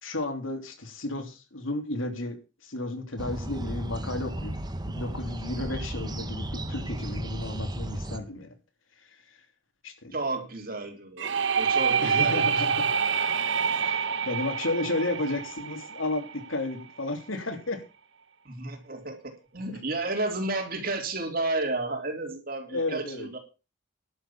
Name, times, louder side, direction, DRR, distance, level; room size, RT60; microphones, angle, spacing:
voice 1, 0.0-4.5 4.9-8.5 9.8-10.1 12.0-12.9 13.8-17.8 22.7-23.4, left 2 dB, 90° left, 6 dB, 3.0 m, -33 dB
sound 1, 3.2-8.2, right 1 dB, 20° right, 1.3 m, -34 dB
voice 2, 10.1-12.7 18.5-23.4, right 2 dB, 50° right, 4 dB, 3.7 m, -32 dB
sound 2, 11.2-16.8, right 6 dB, 65° right, 1.0 m, -27 dB
11.5 x 6.7 x 8.5 m, 0.32 s
head